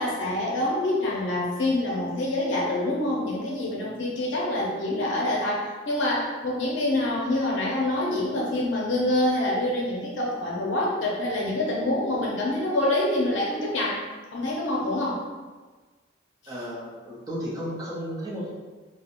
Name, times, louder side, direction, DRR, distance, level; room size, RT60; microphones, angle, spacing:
voice 1, 0.0-14.0 14.3-15.2, left 1 dB, 65° left, -4 dB, 0.6 m, -26 dB
voice 2, 16.5-18.5, equal, 20° right, -7 dB, 0.5 m, -33 dB
2.4 x 2.0 x 2.8 m, 1.3 s
head